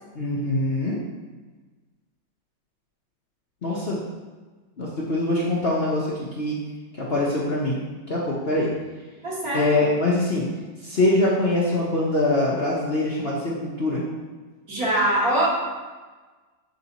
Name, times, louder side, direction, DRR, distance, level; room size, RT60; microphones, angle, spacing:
voice 1, 0.1-1.0 3.6-4.0 4.8-6.1 6.3-6.6 7.0-7.8 8.1-8.7 9.5-10.4 10.8-14.0, left 2 dB, 40° left, -6 dB, 1.0 m, -23 dB
voice 2, 9.2-9.9 14.7-15.5, right 1 dB, 55° right, -7 dB, 2.4 m, -23 dB
7.7 x 4.2 x 4.1 m, 1.3 s
omnidirectional pair, 1.9 m